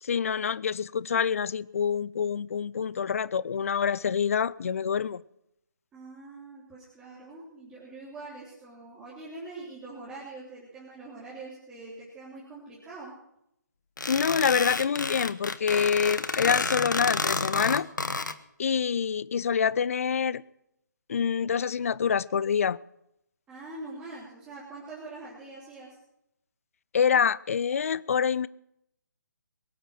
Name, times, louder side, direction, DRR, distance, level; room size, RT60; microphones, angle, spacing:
voice 1, 0.0-5.2 14.1-17.9 18.6-20.4 21.1-22.8 26.9-28.5, left 7 dB, 45° left, 0.5 m, -26 dB
voice 2, 5.9-13.2 23.5-26.0, right 3 dB, 10° right, 3.3 m, -44 dB
sound 1, 14.0-18.3, left 3 dB, 75° left, 1.1 m, -30 dB
23.0 x 8.1 x 6.2 m
figure-of-eight pair, 145°, 10 cm